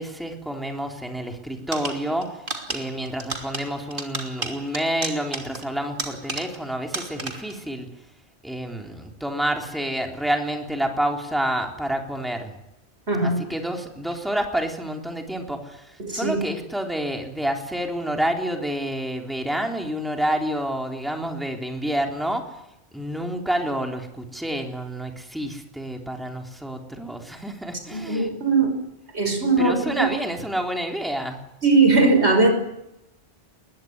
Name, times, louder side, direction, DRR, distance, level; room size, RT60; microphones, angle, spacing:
voice 1, 0.0-2.4 2.7-7.9 8.4-12.5 13.2-22.4 22.9-28.3 29.6-31.4, right 1 dB, ahead, 3 dB, 3.6 m, -28 dB
sound 1, 1.7-6.7 6.9-7.6, right 2 dB, 55° right, 3.2 m, -33 dB
voice 2, 13.1-13.4 16.0-16.4 27.9-28.7 29.1-30.1 31.6-32.5, right 3 dB, 85° right, 6 dB, 6.1 m, -19 dB
22.0 x 21.0 x 9.7 m, 0.84 s
omnidirectional pair, 1.1 m